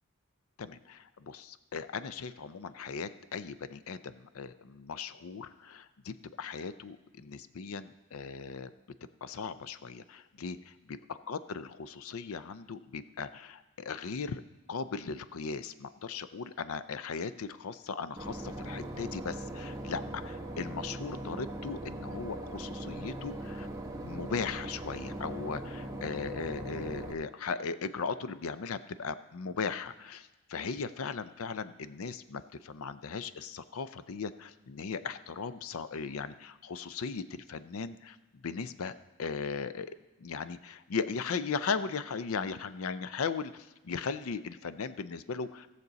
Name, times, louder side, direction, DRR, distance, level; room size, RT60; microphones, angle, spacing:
voice 1, 0.6-8.7 9.2-10.6 11.3-14.4 14.7-23.7 24.0-38.2 38.4-38.9 39.2-45.7, left 5 dB, 75° left, 13 dB, 0.5 m, -38 dB
Boat Water vehicle / Engine, 18.2-27.1, right 1 dB, 15° right, 1.1 m, -40 dB
17.5 x 6.7 x 4.0 m, 1.1 s
head